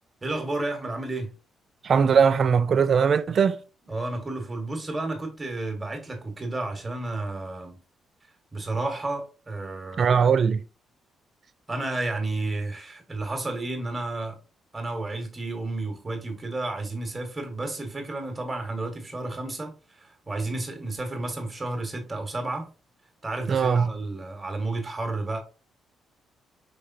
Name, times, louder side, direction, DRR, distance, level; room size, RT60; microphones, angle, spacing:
voice 1, 0.2-1.3 3.9-7.8 8.5-10.1 11.7-14.4 14.7-19.7 20.0-22.7 23.2-25.4, right 2 dB, 20° right, 1.3 m, -31 dB
voice 2, 1.8-3.6 10.0-10.6 23.5-23.9, right 6 dB, 50° right, 0.4 m, -20 dB
4.9 x 3.1 x 2.6 m
cardioid pair, 90°, 0 cm